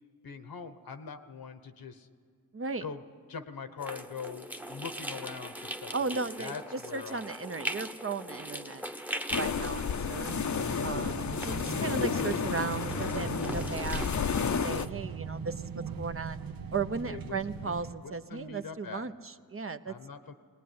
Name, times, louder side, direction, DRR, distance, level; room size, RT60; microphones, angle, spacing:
voice 1, 0.2-2.1 2.8-3.0 3.3-7.3 17.0-17.4 17.6-17.7 18.0-19.1 19.9-20.3, left 5 dB, 75° left, 10 dB, 1.2 m, -42 dB
voice 2, 2.5-2.9 5.9-8.8 9.4-10.3 10.8-15.7 16.0-16.4 16.7-19.9, right 4 dB, 40° right, 9 dB, 0.8 m, -36 dB
Dripping Gushing Water Sequence, 3.8-14.9, equal, 5° right, 1.0 m, -41 dB
sound 1, 9.3-14.9, left 6 dB, 55° left, 0.8 m, -31 dB
sound 2, 9.8-17.9, right 6 dB, 75° right, 1.0 m, -40 dB
19.5 x 19.0 x 9.5 m, 2.1 s
cardioid pair, 70°, 35 cm